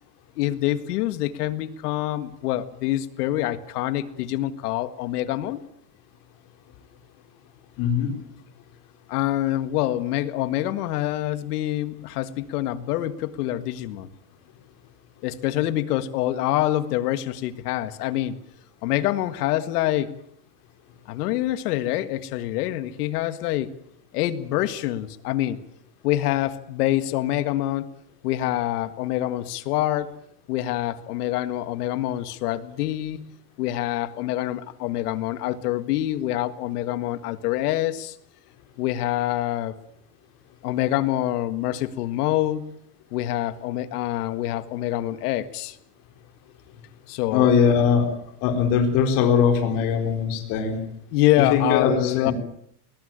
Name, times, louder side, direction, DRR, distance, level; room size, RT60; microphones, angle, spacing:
voice 1, 0.4-5.6 9.1-14.1 15.2-18.4 18.8-20.2 21.1-23.7 24.1-25.6 26.0-27.9 28.2-30.1 30.5-33.2 33.6-38.2 38.8-39.7 40.6-42.7 43.1-45.8 47.1-47.5 51.1-52.3, left 14 dB, 80° left, 13 dB, 1.9 m, -26 dB
voice 2, 7.8-8.1 47.3-48.1 48.4-50.8 51.4-52.3, left 7 dB, 45° left, 4 dB, 4.3 m, -21 dB
20.5 x 20.0 x 9.0 m, 0.71 s
supercardioid pair, 175°, 45 cm